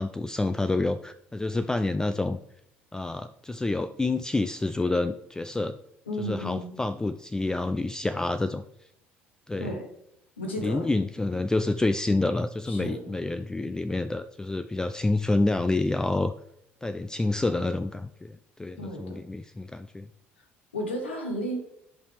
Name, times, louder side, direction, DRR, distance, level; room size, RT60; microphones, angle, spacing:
voice 1, 0.0-2.4 2.9-5.8 6.2-8.6 9.5-9.7 10.6-16.3 16.8-20.1, left 2 dB, 10° left, 10 dB, 0.3 m, -28 dB
voice 2, 6.1-6.7 9.6-9.8 10.4-10.9 12.7-13.0 18.8-19.2 20.7-21.6, equal, 80° left, 2 dB, 1.3 m, -33 dB
10.5 x 5.5 x 3.4 m, 0.76 s
figure-of-eight pair, 55°, 6 cm